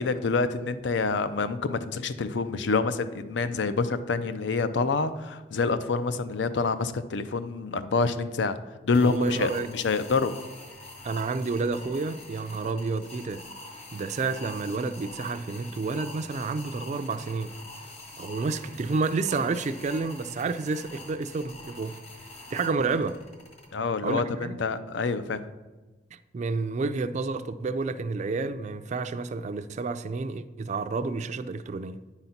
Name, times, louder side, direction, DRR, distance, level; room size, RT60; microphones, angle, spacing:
voice 1, 0.0-8.6 8.8-10.4 23.7-25.4, left 4 dB, 70° left, 0.5 m, -27 dB
sound 1, 8.9-23.7, left 2 dB, 35° left, 1.4 m, -45 dB
voice 2, 9.0-9.7 11.0-13.4 13.9-17.5 18.2-22.0 22.5-23.2 24.0-24.6 26.1-32.0, right 4 dB, 40° right, 0.3 m, -30 dB
9.8 x 4.0 x 5.7 m
head